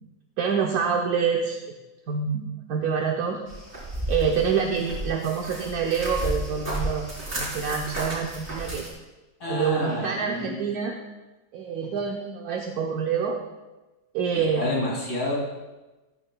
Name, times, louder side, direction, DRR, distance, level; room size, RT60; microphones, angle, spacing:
voice 1, 0.4-1.6 2.1-3.4 4.1-7.1 7.4-8.9 9.5-11.0 11.5-13.4 14.1-14.8, right 6 dB, 75° right, 1 dB, 1.4 m, -26 dB
sound 1, 3.5-8.9, right 1 dB, 35° right, 4.2 m, -32 dB
voice 2, 9.4-10.6 14.3-15.3, left 2 dB, 75° left, -4 dB, 3.5 m, -29 dB
14.5 x 13.0 x 2.3 m, 1.1 s
omnidirectional pair, 1.7 m